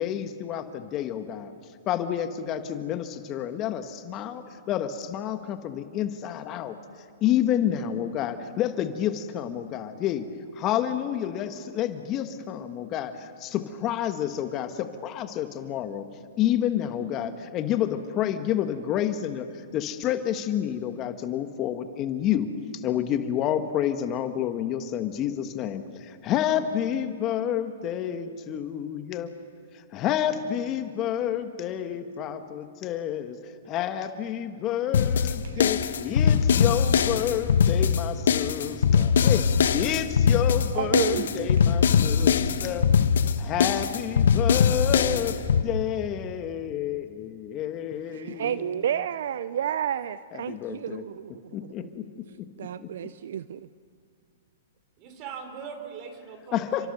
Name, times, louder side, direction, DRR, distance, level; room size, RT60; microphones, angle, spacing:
voice 1, 0.0-1.5 1.9-6.8 7.2-10.3 10.6-16.0 16.4-19.5 19.7-22.5 22.8-29.3 29.7-39.4 39.7-42.9 43.4-45.4 45.6-48.7 50.3-51.0 51.5-53.1 56.5-56.9, left 10 dB, 35° left, 8 dB, 1.5 m, -29 dB
sound 1, 34.9-45.6, left 7 dB, 70° left, 1.2 m, -22 dB
voice 2, 40.7-41.6 43.2-43.4 48.1-51.9 52.6-53.7, right 9 dB, 65° right, 16 dB, 0.6 m, -31 dB
voice 3, 55.0-56.9, right 6 dB, 40° right, 6 dB, 4.8 m, -40 dB
29.5 x 25.0 x 6.8 m, 2.3 s
hypercardioid pair, 120°, 0 cm